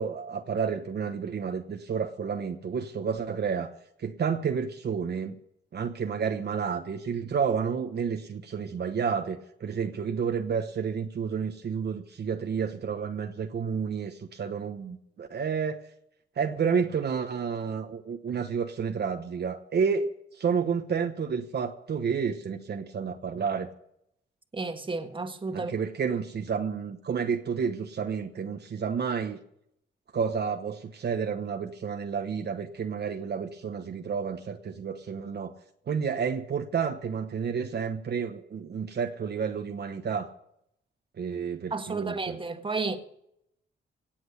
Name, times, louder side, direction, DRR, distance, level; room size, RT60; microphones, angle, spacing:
voice 1, 0.0-3.7 4.0-5.4 5.7-15.8 16.4-23.7 25.5-29.4 30.1-35.5 35.9-40.3 41.2-42.4, right 6 dB, 55° right, 1.1 m, -30 dB
voice 2, 24.5-25.7 41.7-43.0, right 3 dB, 25° right, 1.6 m, -32 dB
17.5 x 7.8 x 8.0 m
cardioid pair, 90°, 21 cm